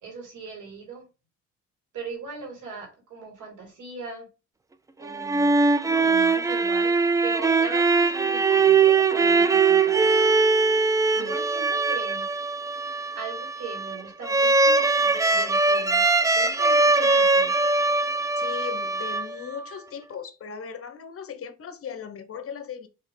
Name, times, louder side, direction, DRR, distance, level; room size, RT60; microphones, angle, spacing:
voice 1, 0.0-1.1 1.9-4.3 5.0-6.9 7.2-10.1 11.1-12.3 13.2-16.1 16.3-17.5, right 4 dB, 85° right, 2.4 m, -39 dB
sound 1, 5.0-19.7, right 4 dB, 10° right, 0.3 m, -21 dB
voice 2, 18.4-22.9, left 7 dB, 50° left, 0.9 m, -38 dB
4.3 x 3.3 x 3.7 m
cardioid pair, 90°, 30 cm